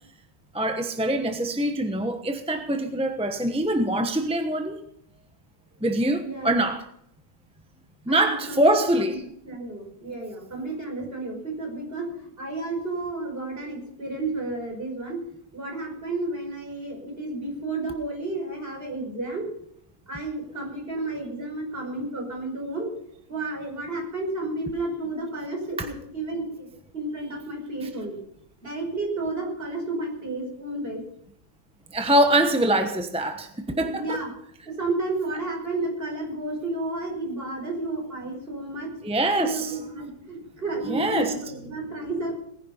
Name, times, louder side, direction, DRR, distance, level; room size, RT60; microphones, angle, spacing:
voice 1, 0.5-4.8 5.8-6.8 8.1-9.2 31.9-34.2 39.0-39.8 40.9-41.3, right 1 dB, 5° right, 6 dB, 0.7 m, -24 dB
voice 2, 6.2-6.5 8.1-9.2 9.4-15.2 15.5-19.5 20.1-22.9 23.3-26.7 26.9-28.2 28.6-31.0 33.7-34.3 34.6-38.9 39.4-42.4, right 2 dB, 30° right, 0 dB, 5.6 m, -32 dB
19.0 x 10.5 x 5.6 m, 0.71 s
omnidirectional pair, 2.1 m